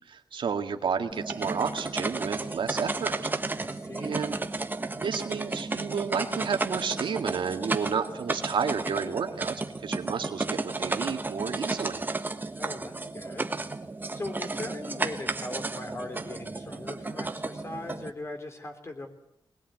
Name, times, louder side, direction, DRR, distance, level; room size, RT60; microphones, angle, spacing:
voice 1, 0.1-3.3 4.0-4.4 5.0-12.0, right 6 dB, 75° right, 6 dB, 2.0 m, -31 dB
sound 1, 1.1-18.1, right 3 dB, 25° right, 1.4 m, -33 dB
voice 2, 3.6-4.4 12.6-13.5 14.1-19.1, left 2 dB, 30° left, 5 dB, 3.8 m, -39 dB
22.5 x 20.0 x 9.3 m, 0.79 s
wide cardioid pair, 140°, 9 cm